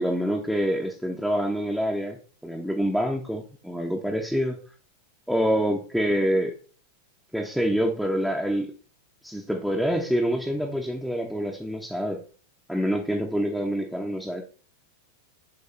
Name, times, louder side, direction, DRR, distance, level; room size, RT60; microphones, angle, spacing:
voice 1, 0.0-2.2 2.4-4.6 5.3-6.5 7.3-8.7 9.2-12.2 12.7-14.4, equal, ahead, -1 dB, 1.0 m, -26 dB
7.7 x 3.5 x 4.4 m, 0.40 s
figure-of-eight pair, 90°, 0 cm